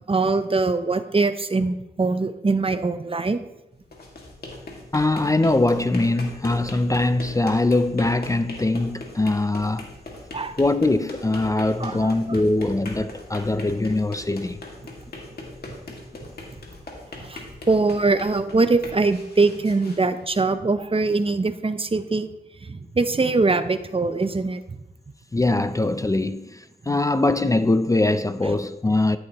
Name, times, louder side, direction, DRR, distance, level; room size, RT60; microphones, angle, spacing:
voice 1, 0.1-3.4 10.3-10.5 11.8-12.4 17.2-17.4 17.7-22.3 22.6-24.6 26.9-27.0, right 3 dB, 35° right, 0.7 m, -22 dB
sound 1, 3.8-20.8, left 2 dB, 65° left, 2.1 m, -40 dB
voice 2, 4.9-9.9 10.6-14.6 25.3-29.2, left 2 dB, 20° left, 0.5 m, -22 dB
13.0 x 7.9 x 3.0 m
cardioid pair, 65°, 17 cm